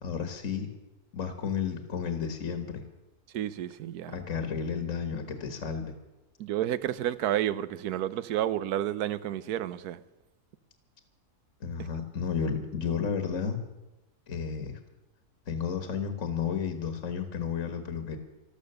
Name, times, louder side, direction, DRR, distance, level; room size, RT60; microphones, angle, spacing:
voice 1, 0.0-0.7 1.1-2.8 4.1-5.9 11.6-13.6 14.3-14.8 15.5-18.2, left 6 dB, 55° left, 1.7 m, -32 dB
voice 2, 3.3-4.1 6.4-10.0, right 11 dB, 75° right, 1.2 m, -30 dB
13.5 x 13.0 x 6.7 m
omnidirectional pair, 1.7 m